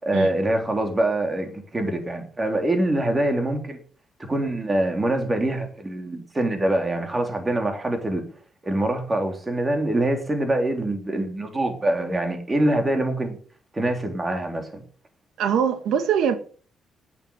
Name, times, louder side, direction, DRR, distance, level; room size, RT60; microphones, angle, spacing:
voice 1, 0.0-3.8 4.2-8.2 8.6-13.4 13.7-14.8, right 1 dB, 20° right, 3.5 m, -24 dB
voice 2, 15.4-16.4, right 8 dB, 80° right, 1.8 m, -22 dB
10.5 x 9.1 x 7.0 m
cardioid pair, 90°, 0 cm